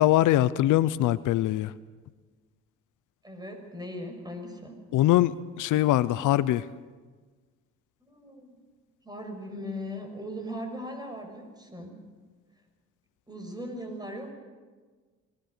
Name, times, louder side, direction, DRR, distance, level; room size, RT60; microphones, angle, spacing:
voice 1, 0.0-1.7 4.9-6.6, left 14 dB, 80° left, 16 dB, 0.7 m, -22 dB
voice 2, 3.2-4.8 8.0-8.6 9.0-11.9 13.3-14.3, equal, 15° right, 4 dB, 6.2 m, -39 dB
25.0 x 18.5 x 6.7 m, 1.4 s
cardioid pair, 90°, 30 cm